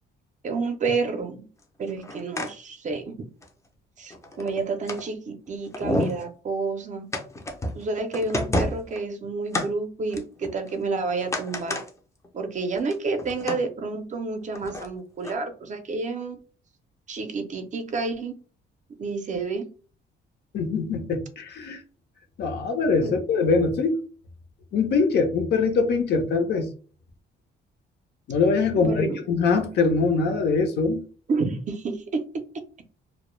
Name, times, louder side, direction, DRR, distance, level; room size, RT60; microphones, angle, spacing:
voice 1, 0.4-1.5 1.8-3.3 4.0-7.1 7.7-11.8 12.3-16.4 17.1-18.3 19.0-19.7 23.0-23.2 28.8-29.2 31.3-32.2, right 3 dB, 40° right, 0.5 m, -29 dB
sound 1, 1.9-2.5 2.9-3.0 3.4-3.5 4.1-5.0 5.5-5.6 5.7-6.2 7.1-7.8 8.1-9.0 9.5-9.7 10.1-10.8 11.2-11.9 12.2-12.3 12.7-13.6 14.5-14.9 15.2-15.3, left 1 dB, 15° left, 0.4 m, -29 dB
voice 2, 20.5-21.8 22.4-24.0 24.7-26.7 28.3-31.0, left 4 dB, 60° left, 0.6 m, -23 dB
2.1 x 2.0 x 3.0 m
cardioid pair, 115°, 20 cm